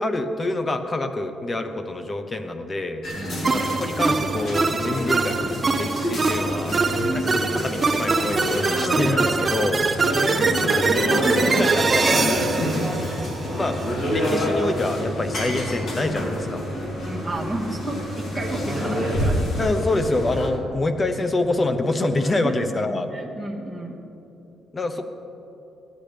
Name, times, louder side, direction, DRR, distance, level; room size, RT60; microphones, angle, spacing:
voice 1, 0.0-3.0 3.5-6.7 7.1-9.8 11.4-11.7 11.9-12.4 13.5-16.7 19.6-23.1 24.7-25.1, left 2 dB, 30° left, 7 dB, 0.9 m, -26 dB
sound 1, 3.0-20.5, equal, 60° left, 2.4 m, -27 dB
voice 2, 3.2-3.5 10.1-11.7 12.0-12.7 17.0-19.5 22.4-22.5 22.8-24.0, right 1 dB, 10° left, -3 dB, 1.7 m, -31 dB
sound 2, 3.4-13.8, right 4 dB, 35° right, 0.7 m, -23 dB
16.0 x 10.5 x 3.4 m, 2.9 s
cardioid pair, 90°, 0 cm